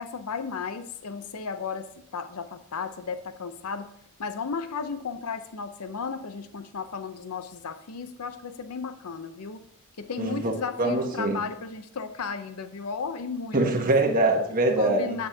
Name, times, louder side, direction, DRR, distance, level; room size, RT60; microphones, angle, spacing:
voice 1, 0.0-3.9 4.2-9.6 10.0-13.6 14.8-15.3, left 5 dB, 80° left, 10 dB, 0.6 m, -34 dB
voice 2, 10.2-11.4 13.5-15.1, right 2 dB, 40° right, 2 dB, 1.4 m, -24 dB
9.6 x 7.7 x 2.8 m, 0.78 s
head